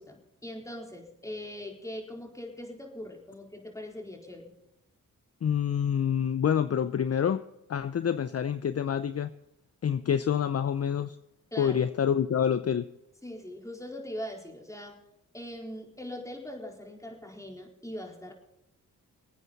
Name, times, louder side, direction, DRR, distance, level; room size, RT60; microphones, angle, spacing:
voice 1, 0.0-4.5 11.5-11.8 13.2-15.0 15.3-18.3, left 1 dB, 10° left, 0 dB, 4.2 m, -41 dB
voice 2, 5.4-7.4 7.7-9.3 9.8-11.1 11.6-12.9, left 8 dB, 45° left, 13 dB, 0.7 m, -27 dB
24.0 x 9.2 x 4.1 m, 0.83 s
supercardioid pair, 55°, 35 cm